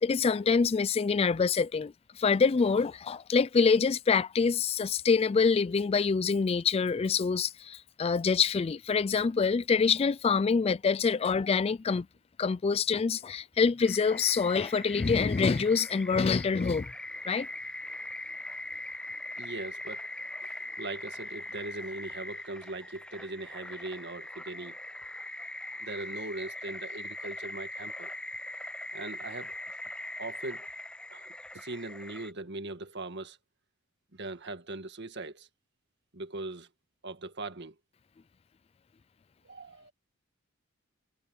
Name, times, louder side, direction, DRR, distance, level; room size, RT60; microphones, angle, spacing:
voice 1, 0.0-12.1 12.4-16.9 17.3-17.5, left 5 dB, 30° left, 0.3 m, -26 dB
sound 1, 13.8-32.3, left 1 dB, 5° left, 0.7 m, -41 dB
voice 2, 19.4-24.8 25.8-28.1 28.9-29.5 30.2-30.7 31.1-33.4 34.1-35.5 36.1-36.7 37.0-37.7 39.4-39.9, right 2 dB, 55° right, 1.7 m, -40 dB
head